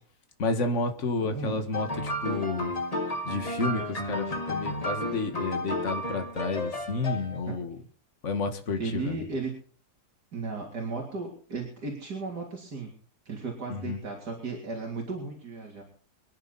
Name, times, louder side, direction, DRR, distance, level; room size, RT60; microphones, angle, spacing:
voice 1, 0.4-2.7 3.2-7.8 8.2-9.2 13.7-14.0, left 3 dB, 50° left, 7 dB, 2.0 m, -31 dB
voice 2, 1.2-1.6 7.5-7.6 8.8-9.5 10.3-12.9 13.3-15.8, right 4 dB, 80° right, 0 dB, 3.8 m, -35 dB
sound 1, 1.7-7.5, left 1 dB, 25° left, 1.7 m, -32 dB
25.0 x 10.5 x 4.2 m, 0.43 s
omnidirectional pair, 1.7 m